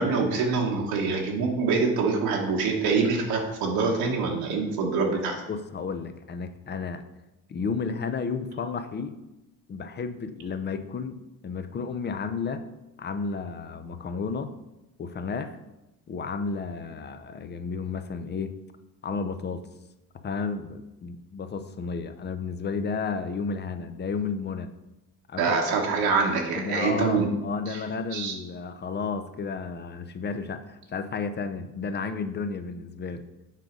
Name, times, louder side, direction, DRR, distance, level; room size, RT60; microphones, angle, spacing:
voice 1, 0.0-5.4 25.4-27.3 27.7-27.8 28.1-28.3, right 4 dB, 75° right, -1 dB, 1.2 m, -25 dB
voice 2, 5.5-7.0 7.5-9.2 9.7-12.7 13.0-14.5 15.0-15.6 16.1-18.6 19.0-19.7 20.2-24.7 25.3-25.6 26.5-33.2, left 5 dB, 30° left, 10 dB, 0.5 m, -32 dB
7.5 x 3.9 x 5.0 m, 0.98 s
cardioid pair, 100°, 36 cm